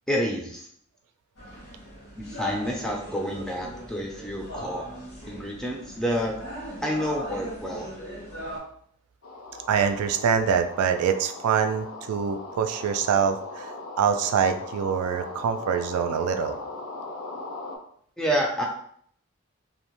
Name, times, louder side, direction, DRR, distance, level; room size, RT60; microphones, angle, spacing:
voice 1, 0.1-0.7 2.2-4.8 5.3-6.3 6.8-7.9 18.2-18.7, equal, 5° left, -1 dB, 0.4 m, -28 dB
sound 1, 1.4-8.6, equal, 85° left, 1.2 m, -39 dB
sound 2, 9.2-17.8, left 2 dB, 70° left, 0.6 m, -39 dB
voice 2, 9.7-16.6, right 7 dB, 90° right, 9 dB, 0.3 m, -25 dB
2.7 x 2.1 x 2.9 m, 0.63 s
head